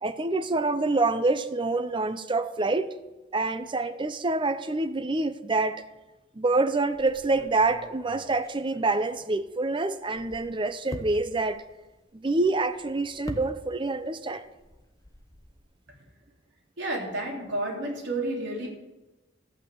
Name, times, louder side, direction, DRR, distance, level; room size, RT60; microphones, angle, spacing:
voice 1, 0.0-3.0 3.3-5.8 6.4-11.6 12.1-14.5, right 3 dB, 25° right, 0.6 m, -26 dB
sound 1, 6.9-9.6 10.0-14.1 14.3-15.6, left 1 dB, 20° left, 1.0 m, -45 dB
voice 2, 16.8-18.7, right 1 dB, 65° right, 3.6 m, -31 dB
13.5 x 6.2 x 8.3 m
head